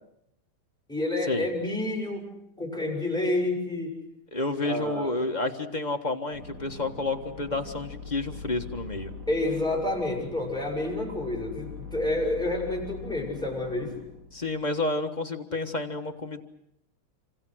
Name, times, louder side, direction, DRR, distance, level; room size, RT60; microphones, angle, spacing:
voice 1, 0.9-2.3 2.6-4.0 4.6-5.1 9.3-13.9, left 2 dB, ahead, 0 dB, 6.9 m, -29 dB
voice 2, 4.3-9.1 14.3-16.4, left 2 dB, 25° left, 4 dB, 1.4 m, -30 dB
sound 1, 6.3-14.8, left 3 dB, 50° right, 4.0 m, -42 dB
27.5 x 26.5 x 6.3 m, 0.75 s
omnidirectional pair, 2.3 m